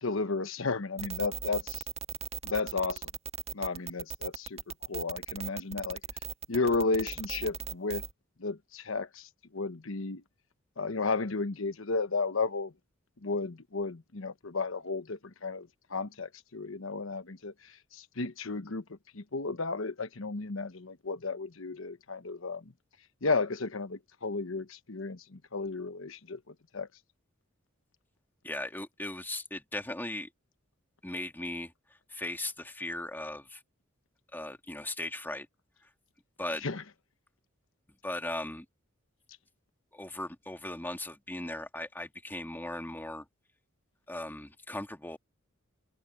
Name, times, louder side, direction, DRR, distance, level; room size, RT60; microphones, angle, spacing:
voice 1, 0.0-1.8 2.4-3.0 3.5-4.6 4.9-6.0 6.5-8.0 8.4-9.3 9.5-10.2 10.8-12.7 13.2-17.5 17.9-18.8 19.1-22.7 23.2-26.4 26.7-26.9 36.6-36.8, left 3 dB, 70° left, 1.1 m, -33 dB
sound 1, 1.0-8.1, right 7 dB, 30° right, 1.5 m, -38 dB
voice 2, 28.4-30.3 31.0-31.7 32.1-33.6 34.3-35.5 36.4-36.6 38.0-38.7 39.9-43.3 44.1-45.2, left 1 dB, 10° left, 2.1 m, -38 dB
head